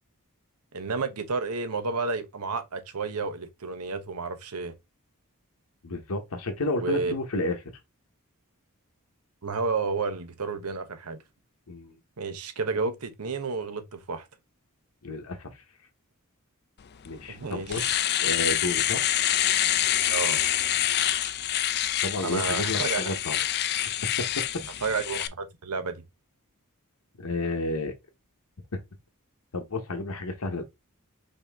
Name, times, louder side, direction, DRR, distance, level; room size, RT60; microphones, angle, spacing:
voice 1, 0.7-4.7 6.8-7.1 9.4-11.2 12.2-14.3 17.3-17.9 20.1-20.4 22.2-23.1 24.8-26.0, right 4 dB, 85° right, 0.9 m, -31 dB
voice 2, 5.8-7.6 11.7-11.9 15.0-15.5 17.0-17.8 18.2-19.1 22.0-23.4 24.2-24.4 27.2-27.9 28.7-28.8 29.5-30.6, left 2 dB, 75° left, 0.9 m, -31 dB
Domestic sounds home sounds, 17.0-17.1 17.5-25.3, left 12 dB, 50° left, 0.4 m, -26 dB
5.3 x 2.8 x 3.4 m
head